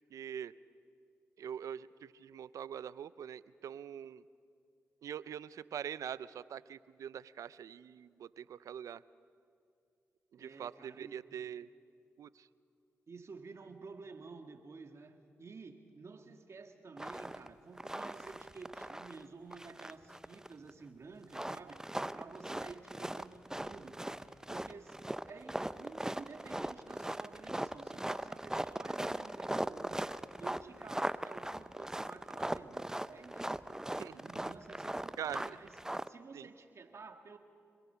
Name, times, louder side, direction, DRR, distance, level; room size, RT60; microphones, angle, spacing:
voice 1, 0.1-0.5 1.4-4.2 5.0-9.0 10.3-11.7 12.2-12.5 33.9-34.2 35.2-35.6 36.3-36.5, right 9 dB, 75° right, 18 dB, 0.5 m, -43 dB
voice 2, 10.4-11.2 13.1-21.9 22.1-24.2 24.5-30.1 30.4-33.9 34.2-35.7 36.1-37.4, right 4 dB, 55° right, 6 dB, 1.9 m, -52 dB
sound 1, 17.0-17.5 17.8-19.2 19.5-20.7 21.2-36.1, right 1 dB, 10° right, 0.7 m, -39 dB
26.5 x 22.5 x 5.7 m, 2.4 s
supercardioid pair, 45°, 6 cm